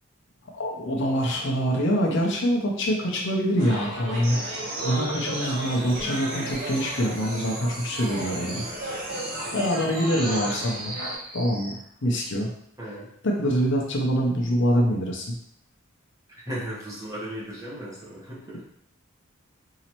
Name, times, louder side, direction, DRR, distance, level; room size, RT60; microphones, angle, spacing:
voice 1, 0.5-8.6 9.5-10.9 11.3-11.8 12.0-12.5 13.2-15.3, equal, 60° left, -1 dB, 0.6 m, -25 dB
sound 1, 3.6-11.2, right 1 dB, 65° right, 1.1 m, -35 dB
sound 2, 4.2-11.8, right 2 dB, 45° right, 0.8 m, -37 dB
voice 2, 16.4-18.6, equal, 15° right, -7 dB, 1.2 m, -36 dB
4.1 x 2.8 x 2.9 m, 0.70 s
head